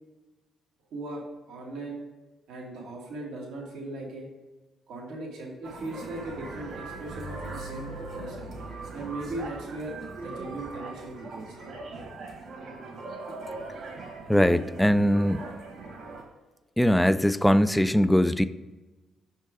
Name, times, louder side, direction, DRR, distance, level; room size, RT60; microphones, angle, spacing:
voice 1, 0.9-2.0 2.5-4.3 4.9-8.5 8.9-9.9 10.2-11.8, right 2 dB, 85° right, -2 dB, 1.6 m, -38 dB
sound 1, 5.6-16.2, right 3 dB, 60° right, 1.8 m, -40 dB
voice 2, 14.3-15.4 16.8-18.5, equal, 5° left, 13 dB, 0.3 m, -21 dB
5.9 x 4.5 x 4.7 m, 1.2 s
cardioid pair, 90°, 0 cm